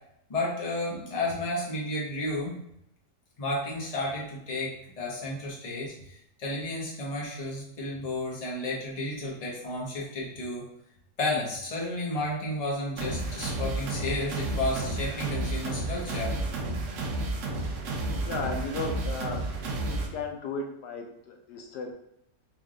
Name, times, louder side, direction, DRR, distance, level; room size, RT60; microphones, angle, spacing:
voice 1, 0.3-2.5 3.4-10.6 11.2-16.3, left 2 dB, 25° left, -4 dB, 1.0 m, -32 dB
sound 1, 13.0-20.1, right 2 dB, 60° right, 0.9 m, -31 dB
voice 2, 18.2-19.4 19.9-21.9, left 3 dB, 75° left, 2 dB, 1.2 m, -35 dB
3.5 x 3.5 x 3.7 m, 0.77 s
omnidirectional pair, 1.8 m